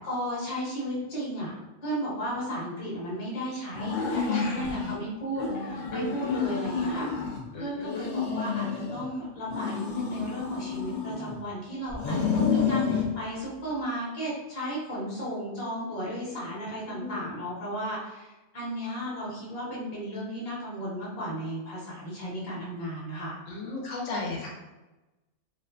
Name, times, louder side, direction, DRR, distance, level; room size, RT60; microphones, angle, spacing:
voice 1, 0.0-7.3 7.6-23.4, equal, 35° left, -6 dB, 0.8 m, -34 dB
sound 1, 3.7-5.0 5.4-7.4 7.8-9.1 9.5-11.4 11.9-13.1, left 6 dB, 60° left, 0.4 m, -30 dB
voice 2, 4.3-4.6 5.9-6.4 7.5-8.1 16.9-17.2 23.5-24.5, left 2 dB, 90° left, -2 dB, 1.1 m, -35 dB
2.5 x 2.3 x 2.4 m, 1.1 s
omnidirectional pair, 1.3 m